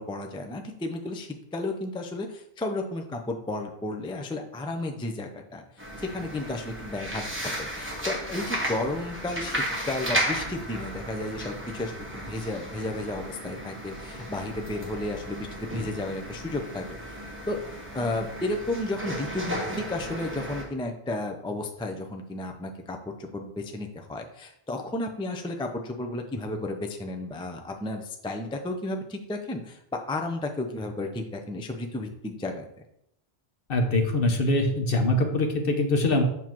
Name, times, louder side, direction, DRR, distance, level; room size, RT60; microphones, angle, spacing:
voice 1, 0.0-17.2 17.5-17.6 17.9-32.7, left 2 dB, 5° left, 4 dB, 0.4 m, -33 dB
sound 1, 5.8-20.6, equal, 10° right, 1.2 m, -34 dB
voice 2, 33.7-36.2, left 2 dB, 60° left, 4 dB, 1.1 m, -23 dB
7.2 x 2.9 x 5.9 m, 0.77 s
omnidirectional pair, 1.1 m